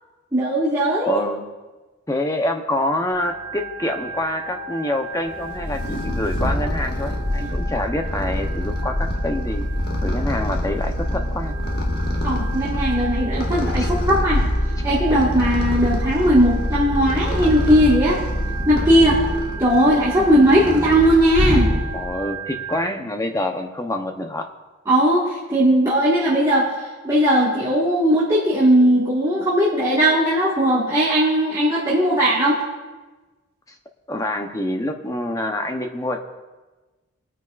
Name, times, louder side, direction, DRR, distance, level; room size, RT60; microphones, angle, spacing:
voice 1, 0.3-1.2 12.2-14.4 14.8-18.2 18.6-19.2 19.6-21.7 24.9-26.7 27.0-32.6, equal, 15° right, -7 dB, 1.8 m, -18 dB
voice 2, 1.1-1.5 2.1-11.6 13.8-13.9 20.2-20.4 21.9-24.5 34.1-36.2, left 1 dB, 15° left, 4 dB, 0.8 m, -26 dB
Organ, 3.1-22.8, right 4 dB, 80° left, 2.7 m, -36 dB
Purr, 5.3-22.1, left 1 dB, 45° left, 1.7 m, -25 dB
22.0 x 9.5 x 2.5 m, 1.2 s
head